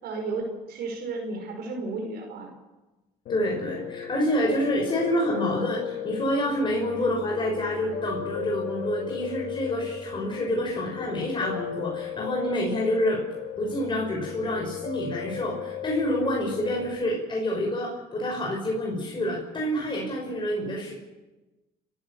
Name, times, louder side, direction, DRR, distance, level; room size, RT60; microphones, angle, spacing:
voice 1, 0.0-2.5, right 3 dB, 70° right, 2 dB, 5.1 m, -33 dB
Piano, 3.3-17.0, left 8 dB, 70° left, 3.8 m, -35 dB
voice 2, 3.3-13.2 13.6-20.9, equal, 30° left, -1 dB, 5.9 m, -28 dB
29.5 x 14.0 x 7.1 m, 1.1 s
cardioid pair, 110°, 17 cm